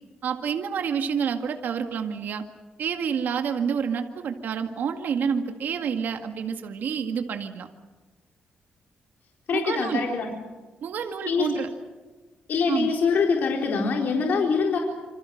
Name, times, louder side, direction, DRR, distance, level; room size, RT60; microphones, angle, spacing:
voice 1, 0.2-2.4 2.8-7.7 9.5-10.0 10.8-11.7 12.7-12.9, right 7 dB, 70° right, 5 dB, 2.0 m, -28 dB
voice 2, 9.5-10.3 11.3-11.5 12.5-14.8, left 5 dB, 65° left, 1 dB, 4.2 m, -24 dB
27.0 x 26.5 x 6.6 m, 1.3 s
cardioid pair, 120°, 3 cm